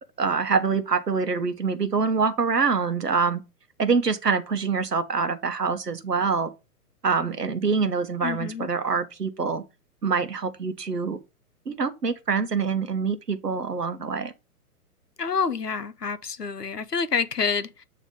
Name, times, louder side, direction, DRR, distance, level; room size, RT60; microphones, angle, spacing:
voice 1, 0.2-3.4 3.8-6.5 7.0-9.6 10.0-11.2 11.7-14.3, right 5 dB, 85° right, 1.0 m, -25 dB
voice 2, 8.2-8.7 15.2-17.9, left 5 dB, 85° left, 0.8 m, -28 dB
8.5 x 2.9 x 5.0 m
figure-of-eight pair, 120°, 46 cm